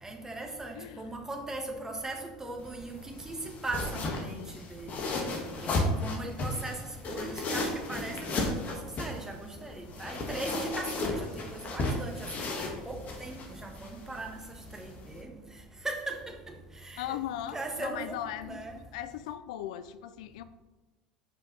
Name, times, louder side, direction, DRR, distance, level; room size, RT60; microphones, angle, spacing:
voice 1, 0.0-3.4 3.6-4.4 4.7-5.1 5.6-6.8 7.1-14.4 14.7-15.3 15.8-16.5 16.8-17.2 17.5-18.8, right 2 dB, 15° right, 2 dB, 1.4 m, -39 dB
voice 2, 0.7-1.1 3.9-4.6 17.0-18.6 18.9-20.4, left 11 dB, 70° left, 13 dB, 0.3 m, -38 dB
sound 1, 2.6-15.2, left 2 dB, 40° left, 1.5 m, -35 dB
5.4 x 5.0 x 5.3 m, 1.2 s
hypercardioid pair, 75°, 4 cm